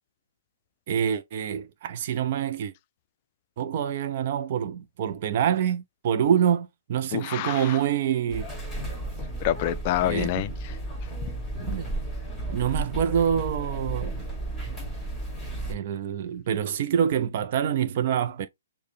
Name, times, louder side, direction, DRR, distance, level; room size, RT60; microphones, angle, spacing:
voice 1, 0.9-2.7 3.6-8.5 10.0-10.3 11.6-11.8 12.5-14.2 15.7-18.5, right 8 dB, 40° right, 0.4 m, -26 dB
voice 2, 7.1-7.8 9.4-10.7 11.2-11.3, left 13 dB, 35° left, 0.3 m, -27 dB
sound 1, 8.3-15.7, right 2 dB, ahead, 1.6 m, -33 dB
6.3 x 2.1 x 3.2 m
figure-of-eight pair, 130°, 0 cm